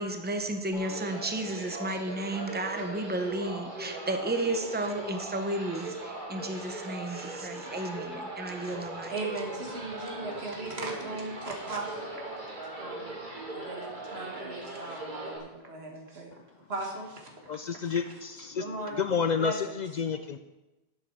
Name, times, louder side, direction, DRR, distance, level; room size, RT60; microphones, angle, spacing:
voice 1, 0.0-9.1, right 1 dB, 10° right, 6 dB, 0.8 m, -33 dB
sound 1, 0.7-15.4, right 2 dB, 50° right, 2.1 m, -40 dB
voice 2, 9.1-12.2 12.8-13.2 13.5-16.3 16.7-17.3 18.6-19.0 19.4-19.8, right 2 dB, 85° right, 0 dB, 2.1 m, -37 dB
voice 3, 17.5-20.4, left 6 dB, 55° left, 9 dB, 0.5 m, -30 dB
11.0 x 8.5 x 4.6 m, 1.1 s
omnidirectional pair, 1.0 m